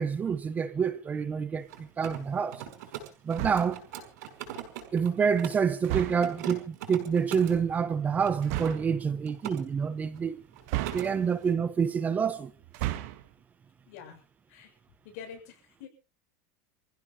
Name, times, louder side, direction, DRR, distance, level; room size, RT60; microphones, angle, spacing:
voice 1, 0.0-1.7 2.0-2.6 3.2-3.8 4.9-10.4 10.9-12.5, right 6 dB, 15° right, 0.9 m, -27 dB
Mechanisms, 1.6-5.7 6.1-7.6 8.2-9.6 9.9-10.2 10.5-11.1, right 10 dB, 80° right, 5.5 m, -41 dB
sound 1, 3.3-3.9 5.8-6.5 8.4-8.9 10.7-11.5 12.6-13.3, right 16 dB, 60° right, 1.6 m, -34 dB
voice 2, 13.9-14.2 14.5-14.7 15.0-15.9, left 7 dB, 70° left, 7.1 m, -46 dB
28.0 x 15.5 x 2.8 m
supercardioid pair, 170°, 9 cm